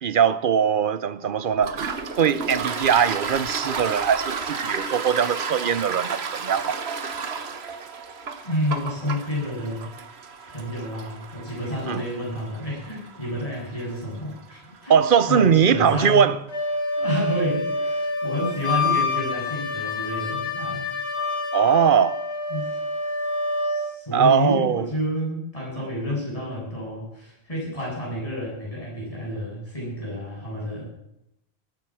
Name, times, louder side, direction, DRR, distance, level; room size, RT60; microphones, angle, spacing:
voice 1, 0.0-1.7 2.2-6.8 11.9-12.0 14.9-16.4 21.5-22.2 24.1-24.8 25.8-25.9, right 7 dB, 55° right, 0.9 m, -20 dB
Toilet flush, 1.6-15.0, right 5 dB, 75° right, 1.4 m, -33 dB
voice 2, 8.4-9.9 10.5-15.0 15.3-16.2 17.0-20.9 22.5-22.8 23.6-30.9, left 1 dB, 30° left, 8.2 m, -29 dB
Wind instrument woodwind instrument, 16.5-23.9, left 2 dB, 85° left, 4.4 m, -27 dB
20.0 x 9.3 x 6.2 m
omnidirectional pair, 1.1 m